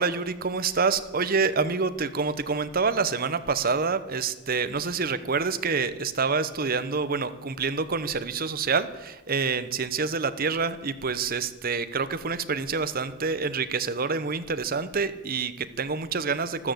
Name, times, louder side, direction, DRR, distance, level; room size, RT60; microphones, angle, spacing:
voice 1, 0.0-16.7, right 4 dB, 45° right, 12 dB, 0.9 m, -27 dB
13.5 x 13.5 x 7.9 m, 1.1 s
head